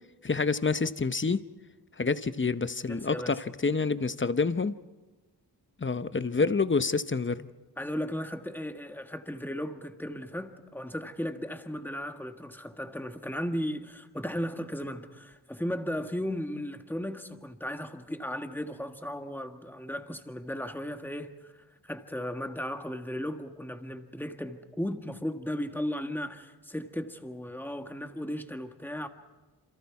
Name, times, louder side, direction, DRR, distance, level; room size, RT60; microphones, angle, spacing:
voice 1, 0.2-1.4 2.0-4.7 5.8-7.5, left 4 dB, 30° left, 0.8 m, -28 dB
voice 2, 2.9-3.4 7.8-29.1, equal, 5° left, 1.5 m, -36 dB
28.0 x 27.0 x 4.8 m
wide cardioid pair, 100°, 41 cm